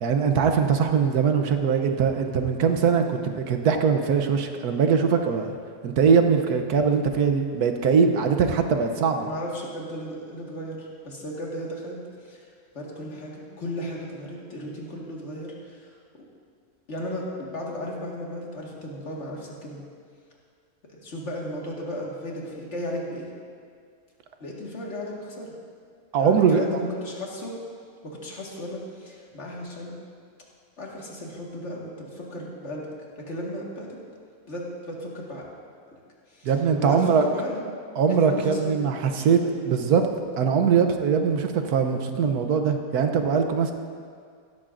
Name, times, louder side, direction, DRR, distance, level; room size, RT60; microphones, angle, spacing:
voice 1, 0.0-5.5 5.8-9.3 26.1-26.6 36.4-37.2 38.0-39.4 39.6-40.0 40.4-43.7, right 6 dB, 70° right, 6 dB, 1.3 m, -21 dB
voice 2, 9.2-12.5 12.7-16.3 16.9-19.8 20.9-23.3 24.4-25.5 26.2-27.6 28.0-29.9 30.8-32.9 33.2-34.0 34.5-35.5 35.9-36.0 36.3-36.5 36.8-37.6 38.1-39.6, left 1 dB, 45° left, -3 dB, 2.0 m, -35 dB
16.0 x 13.0 x 2.6 m, 2.1 s
omnidirectional pair, 1.7 m